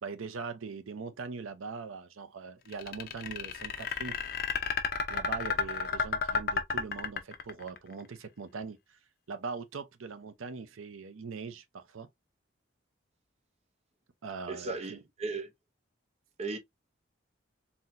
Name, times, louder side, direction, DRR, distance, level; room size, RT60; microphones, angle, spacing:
voice 1, 0.0-4.2 5.1-9.0 9.3-12.1 14.2-15.0, right 5 dB, 90° right, 0.6 m, -41 dB
sound 1, 2.7-7.8, left 5 dB, 50° left, 0.6 m, -31 dB
voice 2, 14.5-15.5 16.4-16.6, right 3 dB, 30° right, 0.7 m, -36 dB
4.1 x 2.8 x 2.6 m
head